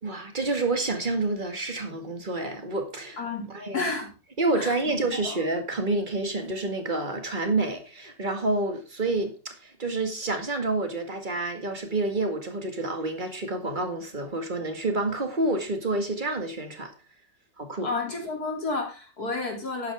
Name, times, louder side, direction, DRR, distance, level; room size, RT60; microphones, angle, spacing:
voice 1, 0.0-3.2 3.5-3.9 4.4-16.9 17.6-17.9, right 2 dB, 25° right, 2.1 m, -28 dB
voice 2, 3.2-4.1 4.5-4.8 5.1-5.4 17.8-19.9, left 3 dB, 55° left, 3.5 m, -31 dB
12.0 x 9.4 x 3.6 m
omnidirectional pair, 1.9 m